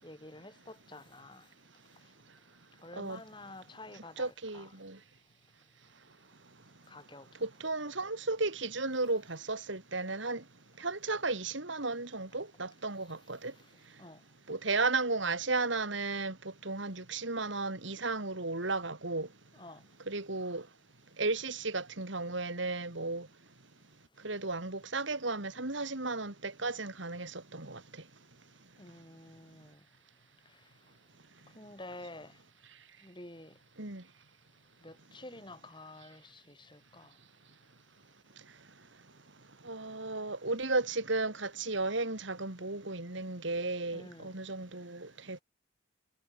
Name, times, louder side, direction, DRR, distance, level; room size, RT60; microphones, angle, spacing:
voice 1, 0.0-1.4 2.8-4.7 6.9-7.3 14.0-14.2 19.5-19.8 28.8-29.8 31.6-32.3 33.0-33.5 34.8-37.1 43.9-44.3, left 2 dB, 25° left, 7.1 m, -49 dB
voice 2, 4.2-5.0 7.4-10.4 10.8-13.5 14.5-16.4 16.6-19.3 20.1-20.7 21.2-23.3 24.2-27.8 33.8-34.0 39.6-45.4, right 3 dB, 70° right, 3.0 m, -34 dB
head